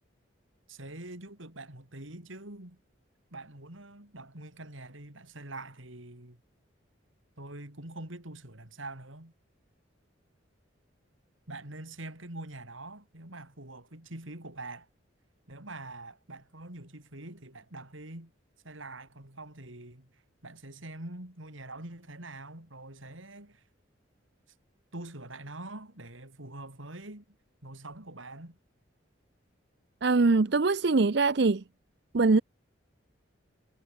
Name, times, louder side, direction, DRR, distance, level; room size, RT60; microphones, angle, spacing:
voice 1, 0.7-2.8 3.3-6.4 7.4-9.3 11.5-14.9 15.5-18.3 18.6-23.6 24.9-27.2 27.6-28.6, right 2 dB, 80° right, 4.7 m, -44 dB
voice 2, 30.0-31.6 32.1-32.4, right 3 dB, 55° right, 0.6 m, -23 dB
head